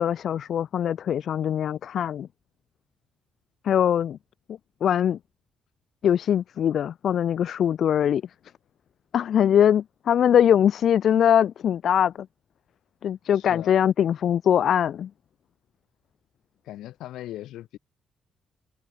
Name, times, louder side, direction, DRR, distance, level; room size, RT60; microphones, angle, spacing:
voice 1, 0.0-2.3 3.6-4.2 4.8-5.2 6.0-8.2 9.1-12.1 13.0-15.1, left 9 dB, 65° left, 0.9 m, -22 dB
voice 2, 13.3-13.8 16.6-17.8, left 14 dB, 85° left, 6.6 m, -39 dB
cardioid pair, 90°, 0 cm